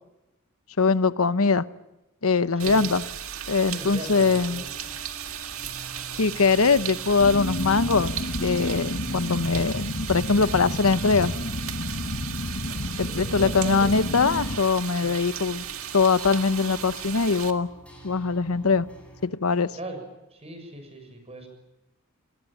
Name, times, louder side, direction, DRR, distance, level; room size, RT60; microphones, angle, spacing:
voice 1, 0.8-1.6 2.2-3.0 3.5-4.6 6.1-11.3 13.0-15.6 15.9-17.7 18.0-18.9 19.2-19.7, left 4 dB, 90° left, 15 dB, 1.0 m, -22 dB
voice 2, 2.6-2.9 3.7-5.0 13.0-13.9 15.0-15.2 19.8-20.0 20.3-21.5, right 1 dB, 30° right, 6 dB, 6.9 m, -38 dB
sound 1, 2.6-17.5, right 10 dB, 75° right, 2.0 m, -36 dB
sound 2, 4.0-19.3, right 2 dB, 5° left, 7.8 m, -48 dB
sound 3, 7.2-14.6, left 2 dB, 55° left, 1.2 m, -31 dB
27.5 x 20.5 x 9.1 m, 0.93 s
head